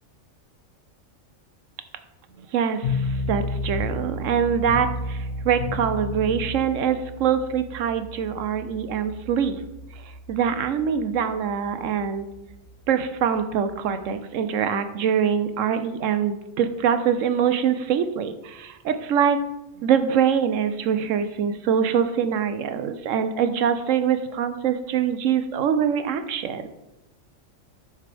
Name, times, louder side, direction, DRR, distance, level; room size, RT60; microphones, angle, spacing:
voice 1, 2.5-9.6 10.0-12.3 12.9-19.4 19.8-26.7, right 8 dB, 70° right, 10 dB, 1.0 m, -24 dB
sound 1, 2.8-14.0, left 2 dB, 80° left, 1.8 m, -33 dB
9.2 x 6.1 x 3.4 m, 0.95 s
omnidirectional pair, 1.4 m